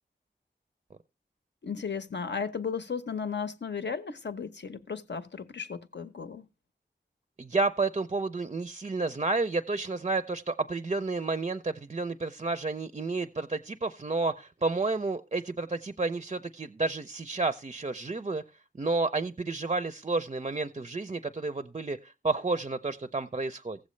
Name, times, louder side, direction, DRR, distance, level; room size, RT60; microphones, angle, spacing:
voice 1, 1.6-6.5, left 6 dB, 70° left, 0.8 m, -35 dB
voice 2, 7.4-18.4 18.7-23.8, right 3 dB, 30° right, 0.4 m, -31 dB
15.5 x 7.5 x 3.1 m
wide cardioid pair, 60°, 19 cm